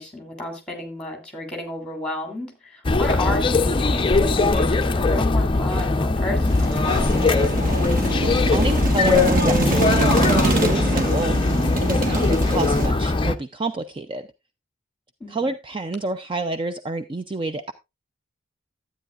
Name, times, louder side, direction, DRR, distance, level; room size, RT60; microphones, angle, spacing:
voice 1, 0.0-6.9 15.2-15.5, left 1 dB, 5° left, 2 dB, 3.1 m, -32 dB
sound 1, 2.8-13.3, left 3 dB, 25° left, 0.5 m, -20 dB
sound 2, 6.5-12.9, right 2 dB, 40° right, 1.4 m, -25 dB
voice 2, 8.2-14.3 15.3-17.7, right 2 dB, 25° right, 9 dB, 0.4 m, -28 dB
12.5 x 9.1 x 2.5 m, 0.23 s
head